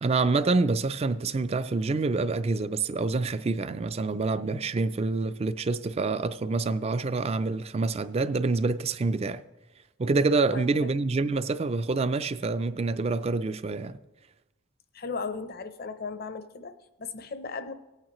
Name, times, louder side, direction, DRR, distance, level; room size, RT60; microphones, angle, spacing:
voice 1, 0.0-9.4 10.0-14.0, right 3 dB, 30° right, 0.4 m, -27 dB
voice 2, 10.5-10.9 14.9-17.7, left 4 dB, 45° left, 0.6 m, -36 dB
18.5 x 8.8 x 3.1 m
head